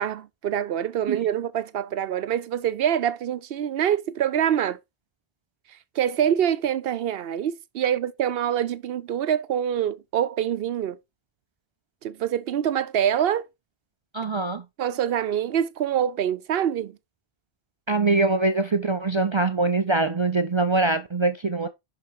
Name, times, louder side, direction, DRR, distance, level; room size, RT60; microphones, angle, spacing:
voice 1, 0.0-4.8 6.0-11.0 12.0-13.5 14.8-17.0, right 9 dB, 70° right, 0.8 m, -25 dB
voice 2, 14.1-14.6 17.9-21.7, right 3 dB, 40° right, 0.4 m, -23 dB
5.8 x 5.5 x 4.7 m
omnidirectional pair, 1.1 m